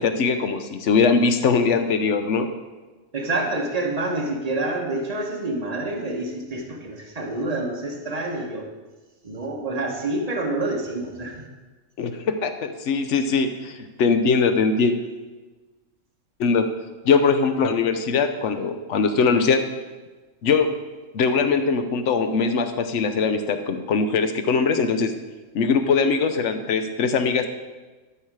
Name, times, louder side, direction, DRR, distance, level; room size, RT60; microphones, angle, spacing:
voice 1, 0.0-2.5 12.0-14.9 16.4-16.7 17.0-19.6 20.4-20.7 21.1-25.1 25.5-27.5, left 5 dB, 60° left, 8 dB, 1.0 m, -21 dB
voice 2, 3.1-8.7 9.2-11.5, right 2 dB, 30° right, 1 dB, 1.3 m, -27 dB
13.0 x 5.7 x 4.8 m, 1.3 s
omnidirectional pair, 1.5 m